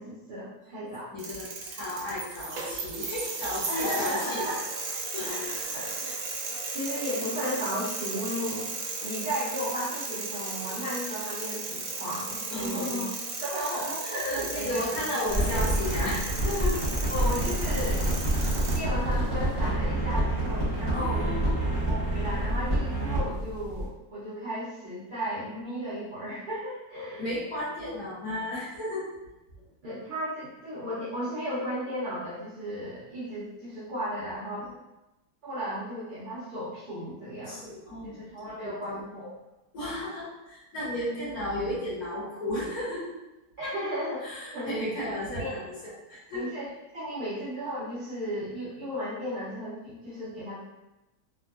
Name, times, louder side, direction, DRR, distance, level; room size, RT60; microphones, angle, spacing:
voice 1, 0.0-1.1 3.7-4.6 5.2-6.2 6.5-8.7 9.0-13.0 13.4-15.0 15.3-15.5 17.1-18.0 18.7-21.3 21.8-27.4 29.8-34.7 35.4-37.7 38.0-39.4 41.1-41.2 43.6-44.3 44.5-44.7 45.0-45.1 45.4-45.5 46.3-50.6, equal, 60° right, -10 dB, 0.5 m, -35 dB
voice 2, 1.1-4.5 5.1-5.7 12.5-13.1 14.0-16.8 20.9-21.7 27.2-29.1 34.6-34.7 37.5-38.9 39.7-43.1 43.6-43.7 44.2-45.7 46.1-46.4, left 1 dB, 65° left, -8 dB, 1.6 m, -34 dB
sound 1, 1.2-18.8, right 4 dB, 80° right, 1.1 m, -35 dB
sound 2, 15.3-23.9, right 1 dB, 15° left, 0.9 m, -27 dB
3.5 x 2.1 x 2.4 m, 1.0 s
omnidirectional pair, 1.7 m